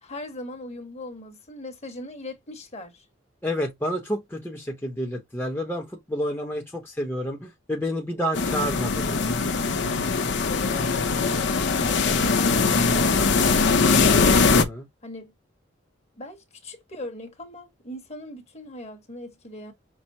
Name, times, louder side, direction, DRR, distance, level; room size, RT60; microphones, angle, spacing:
voice 1, 0.0-3.0 10.5-14.2 15.0-15.3 16.2-19.7, left 1 dB, 35° left, 1.4 m, -39 dB
voice 2, 3.4-9.2 14.5-14.9, equal, 10° left, 0.9 m, -29 dB
sound 1, 8.3-14.6, left 4 dB, 60° left, 0.7 m, -21 dB
6.0 x 2.0 x 4.0 m
head